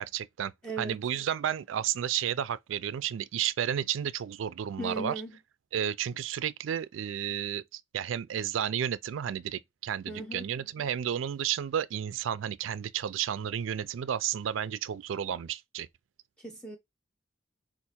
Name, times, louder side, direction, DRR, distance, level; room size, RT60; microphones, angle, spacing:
voice 1, 0.0-0.5 0.8-5.2 5.7-15.9, right 9 dB, 85° right, 0.3 m, -32 dB
voice 2, 0.6-1.0 4.8-5.3 10.1-10.5 16.4-16.8, right 2 dB, 5° left, 0.6 m, -37 dB
4.6 x 2.5 x 4.2 m
head